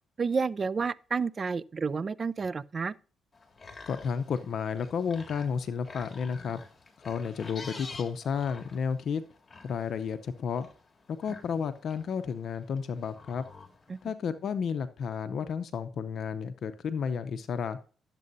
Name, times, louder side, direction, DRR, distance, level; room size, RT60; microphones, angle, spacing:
voice 1, 0.2-2.9 13.9-14.0, right 5 dB, 40° right, 0.4 m, -30 dB
sound 1, 3.3-14.1, left 3 dB, 30° left, 2.1 m, -49 dB
voice 2, 3.9-6.6 7.0-9.2 9.6-10.7 11.1-13.4 14.0-17.8, left 6 dB, 60° left, 0.6 m, -32 dB
12.0 x 7.5 x 2.7 m
cardioid pair, 90°, 0 cm